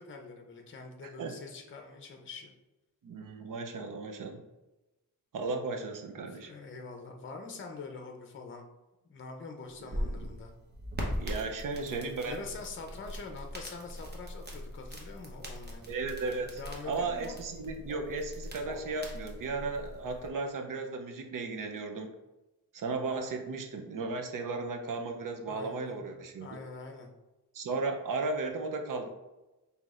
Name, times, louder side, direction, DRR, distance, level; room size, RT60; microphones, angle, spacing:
voice 1, 0.0-2.6 6.3-8.7 9.1-10.5 12.3-15.8 16.6-17.4 25.5-27.1, left 4 dB, 35° left, 4 dB, 0.6 m, -44 dB
voice 2, 3.0-4.4 5.3-6.5 9.9-10.3 11.1-12.4 15.9-16.6 16.9-22.1 22.7-26.5 27.5-29.1, right 3 dB, 65° right, 4 dB, 0.7 m, -35 dB
sound 1, 9.7-20.3, equal, 30° right, 0.9 m, -41 dB
sound 2, 17.7-19.3, equal, 15° left, 1.2 m, -50 dB
5.8 x 2.8 x 2.4 m, 1.0 s
cardioid pair, 90°, 35 cm